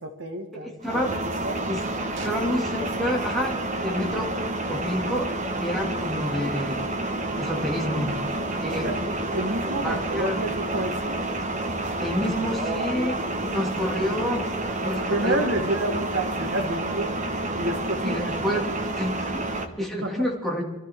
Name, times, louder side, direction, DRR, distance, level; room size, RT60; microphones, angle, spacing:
voice 1, 0.0-0.8 1.2-1.6 2.2-2.3 8.5-9.0 9.3-11.2 14.8-17.1 17.5-18.1 18.5-18.6 20.0-20.3, right 2 dB, 55° right, 5 dB, 1.3 m, -29 dB
voice 2, 0.5-1.1 1.7-1.8 2.2-4.4 4.7-6.8 7.4-8.2 8.6-8.9 9.8-10.4 12.0-14.5 14.8-15.5 18.0-18.7 19.0-19.4 19.8-20.6, equal, ahead, -2 dB, 2.3 m, -28 dB
sound 1, 0.8-19.7, right 2 dB, 35° right, 1.2 m, -29 dB
26.5 x 13.0 x 3.6 m, 1.1 s
head